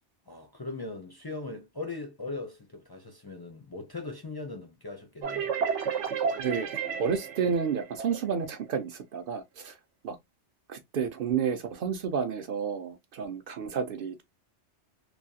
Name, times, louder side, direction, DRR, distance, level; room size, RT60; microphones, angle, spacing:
voice 1, 0.3-5.5, left 3 dB, 35° left, 0.3 m, -39 dB
sound 1, 5.2-8.7, right 6 dB, 85° right, 1.0 m, -32 dB
voice 2, 6.4-9.8 10.0-10.2 10.7-14.2, right 6 dB, 60° right, 0.6 m, -31 dB
3.1 x 2.3 x 2.6 m
omnidirectional pair, 1.2 m